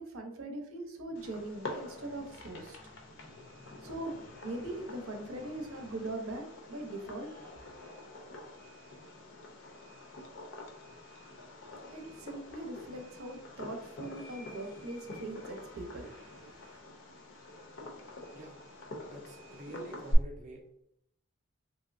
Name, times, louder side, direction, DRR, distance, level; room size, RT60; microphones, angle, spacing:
voice 1, 0.0-2.8 3.8-4.1 4.4-7.8 11.9-16.8, right 1 dB, 85° right, 3 dB, 0.6 m, -41 dB
Fireworks, 1.1-20.1, left 1 dB, 60° left, 0.5 m, -45 dB
sound 1, 1.1-7.3, equal, 15° left, 0.5 m, -59 dB
voice 2, 19.0-20.6, right 1 dB, 35° right, 1 dB, 0.3 m, -46 dB
3.1 x 2.6 x 2.5 m, 0.73 s
head